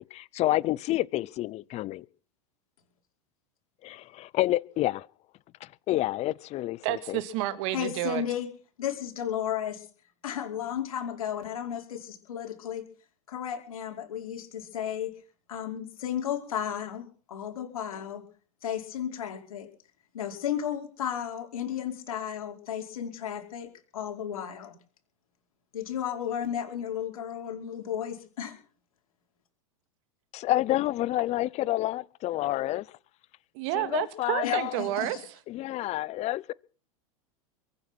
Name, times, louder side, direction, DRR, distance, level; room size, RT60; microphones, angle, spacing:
voice 1, 0.0-2.0 3.8-5.0 5.9-7.2 30.3-32.8 33.7-34.7 35.5-36.5, left 16 dB, 40° left, 0.7 m, -29 dB
voice 2, 6.8-8.2 33.5-35.2, right 15 dB, 60° right, 2.3 m, -30 dB
voice 3, 7.7-8.5 8.8-9.9 10.2-12.8 13.3-15.1 15.5-18.2 18.6-19.7 20.1-24.7 25.7-28.6 34.4-35.2, left 9 dB, 80° left, 4.9 m, -34 dB
23.0 x 9.8 x 6.2 m
hypercardioid pair, 110°, 18 cm